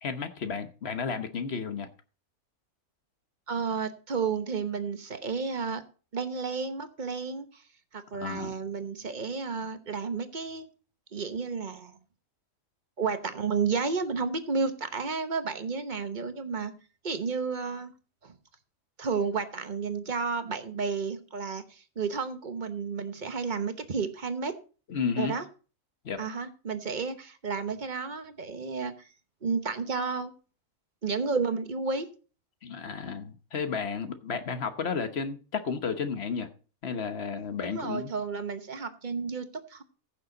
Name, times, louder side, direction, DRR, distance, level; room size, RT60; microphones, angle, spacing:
voice 1, 0.0-1.9 8.1-8.5 24.9-25.3 26.0-26.2 32.6-36.5 36.8-38.1, left 5 dB, 50° left, 1.2 m, -32 dB
voice 2, 3.5-5.8 6.1-7.6 7.9-10.7 11.1-12.0 13.0-16.7 17.0-17.9 18.2-18.3 19.0-24.5 25.2-25.4 26.2-29.1 29.4-30.3 31.0-32.1 37.6-39.8, right 5 dB, 35° right, 1.1 m, -32 dB
15.0 x 6.8 x 3.9 m
omnidirectional pair, 1.5 m